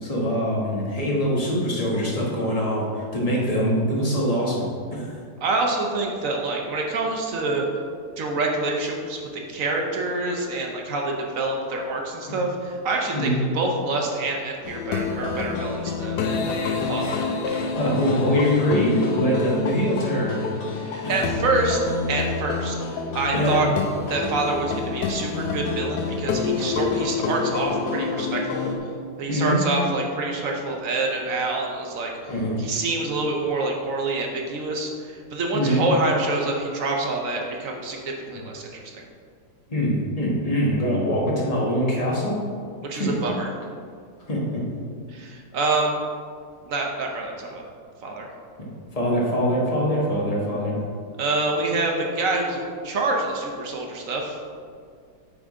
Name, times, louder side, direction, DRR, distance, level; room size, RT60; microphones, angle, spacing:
voice 1, 0.0-5.2 13.1-13.4 17.8-20.4 23.3-23.6 29.3-29.6 32.3-32.6 35.5-35.8 39.7-42.4 42.9-43.1 44.3-44.6 48.9-50.7, equal, 25° left, -4 dB, 1.2 m, -23 dB
voice 2, 5.4-7.7 8.2-9.2 9.5-16.2 16.4-17.2 17.4-17.7 20.7-21.8 22.1-23.7 24.1-28.7 29.2-32.3 32.6-38.9 42.8-43.5 45.1-46.0 46.6-47.6 48.0-48.3 51.2-54.4, right 2 dB, 60° right, 1 dB, 1.1 m, -26 dB
sound 1, 14.6-28.8, left 4 dB, 80° left, 1.3 m, -28 dB
8.7 x 3.7 x 3.6 m, 2.1 s
omnidirectional pair, 1.8 m